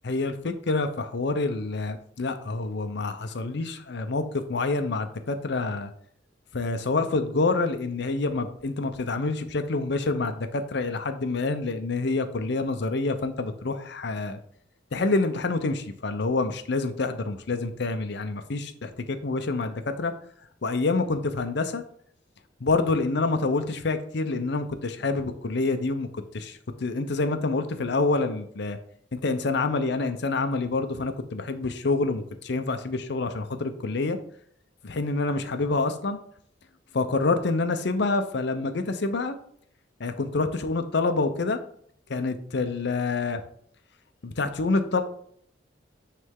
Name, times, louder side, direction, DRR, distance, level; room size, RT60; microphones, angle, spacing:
voice 1, 0.0-4.2 4.5-5.9 6.5-14.4 14.9-20.1 20.6-21.8 22.6-28.8 29.1-34.2 34.8-36.2 36.9-39.4 40.0-41.6 42.1-43.4 44.2-45.0, left 3 dB, 65° left, 9 dB, 0.6 m, -27 dB
9.3 x 3.3 x 3.7 m, 0.65 s
head